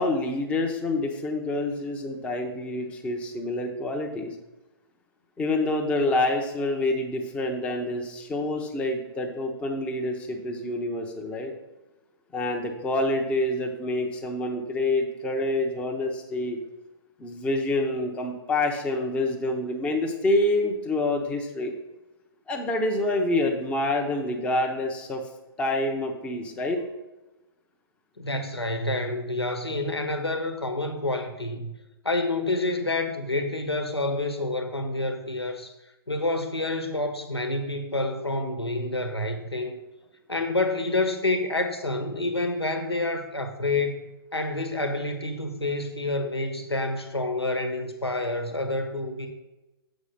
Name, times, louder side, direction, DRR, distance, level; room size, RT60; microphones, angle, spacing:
voice 1, 0.0-4.3 5.4-11.5 12.3-16.6 17.2-21.7 22.5-25.2 25.6-26.8, left 2 dB, 10° left, 2 dB, 0.7 m, -27 dB
voice 2, 28.2-31.7 32.0-35.7 36.1-39.8 40.3-44.0 44.3-49.3, left 2 dB, 80° left, 6 dB, 1.2 m, -28 dB
7.2 x 4.8 x 6.5 m, 1.0 s
figure-of-eight pair, 125°, 13 cm